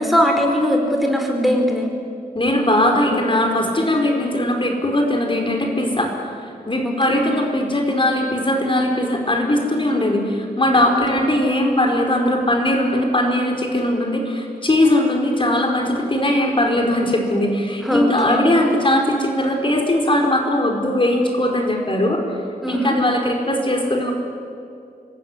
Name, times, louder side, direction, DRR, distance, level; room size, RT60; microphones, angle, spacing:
voice 1, 0.0-1.9 7.1-7.3 11.1-11.2 17.8-18.4 22.6-22.9, equal, ahead, 2 dB, 4.7 m, -20 dB
voice 2, 2.3-6.3 6.7-22.2 22.7-24.1, left 1 dB, 35° left, 1 dB, 4.8 m, -19 dB
26.0 x 21.0 x 9.9 m, 2.4 s
wide cardioid pair, 110°, 16 cm